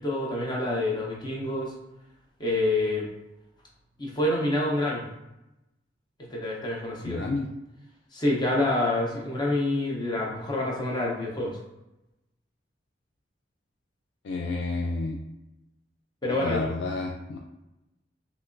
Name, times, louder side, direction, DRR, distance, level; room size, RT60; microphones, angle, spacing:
voice 1, 0.0-1.7 2.4-3.1 4.0-5.0 6.3-7.2 8.1-11.6 16.2-16.7, left 2 dB, 25° left, -3 dB, 0.6 m, -27 dB
voice 2, 7.0-7.5 14.2-15.2 16.2-17.4, left 3 dB, 70° left, 1 dB, 0.3 m, -30 dB
3.2 x 2.9 x 2.5 m, 0.94 s
head